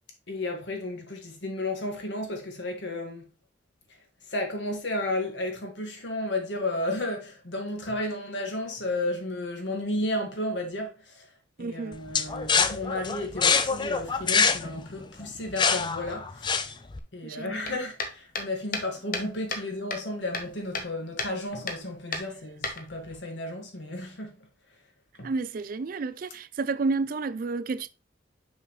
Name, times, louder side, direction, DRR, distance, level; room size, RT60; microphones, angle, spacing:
voice 1, 0.3-3.2 3.9-4.0 4.3-11.3 11.6-16.7 17.1-24.3 25.2-25.3, left 1 dB, 65° left, 1.8 m, -33 dB
voice 2, 11.6-12.0 17.2-17.8 25.2-27.9, right 4 dB, 45° right, 0.3 m, -31 dB
sound 1, 12.1-17.0, left 5 dB, 25° left, 0.4 m, -25 dB
sound 2, 17.6-19.7 19.9-20.9 21.2-21.3 21.7-21.8 22.1-23.2, left 4 dB, 45° left, 1.0 m, -33 dB
6.3 x 5.6 x 3.1 m
head